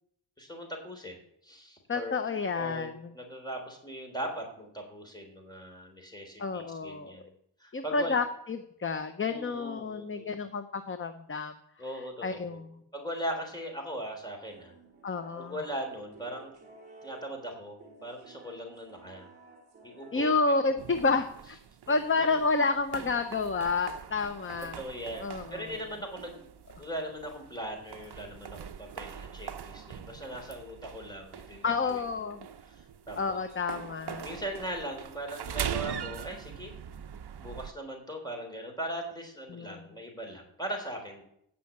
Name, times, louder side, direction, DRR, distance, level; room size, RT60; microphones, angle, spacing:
voice 1, 0.4-2.2 2.5-7.3 7.6-8.2 9.2-10.4 11.8-12.6 12.9-14.7 15.3-16.5 17.0-19.3 19.8-20.3 21.9-22.4 24.8-26.5 26.8-32.3 32.6-33.2 34.2-36.7 37.4-41.2, equal, 10° left, 1 dB, 3.3 m, -39 dB
voice 2, 1.9-2.9 6.4-7.2 7.7-11.5 12.2-12.6 15.0-15.6 20.1-21.6 21.9-24.8 25.2-25.8 31.6-32.4 33.2-34.3 39.5-39.8, left 4 dB, 25° left, 8 dB, 0.6 m, -30 dB
sound 1, 14.5-21.8, right 2 dB, 20° right, 3.8 m, -54 dB
sound 2, 20.8-37.7, right 8 dB, 55° right, 0.7 m, -42 dB
16.0 x 5.7 x 8.6 m, 0.74 s
wide cardioid pair, 170°, 49 cm